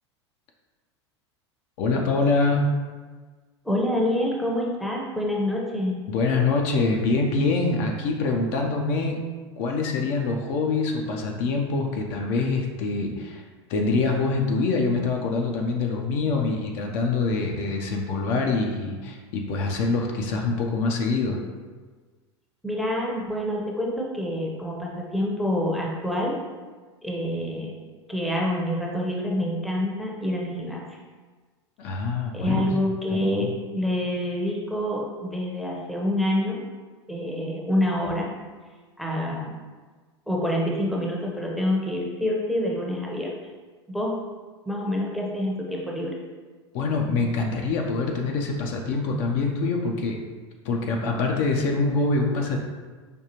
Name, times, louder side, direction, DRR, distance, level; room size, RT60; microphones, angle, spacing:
voice 1, 1.8-2.8 6.1-9.2 9.6-13.4 13.7-21.4 31.8-32.7 33.1-33.5 46.7-50.2 50.6-52.6, left 3 dB, 50° left, 1 dB, 0.6 m, -25 dB
voice 2, 3.6-5.9 22.6-26.4 27.0-27.7 28.1-31.0 32.3-36.6 37.1-38.3 39.0-39.6 40.3-43.3 43.9-44.1 44.7-46.2, left 1 dB, ahead, -3 dB, 0.7 m, -27 dB
5.1 x 2.4 x 2.9 m, 1.4 s
hypercardioid pair, 90°, 15 cm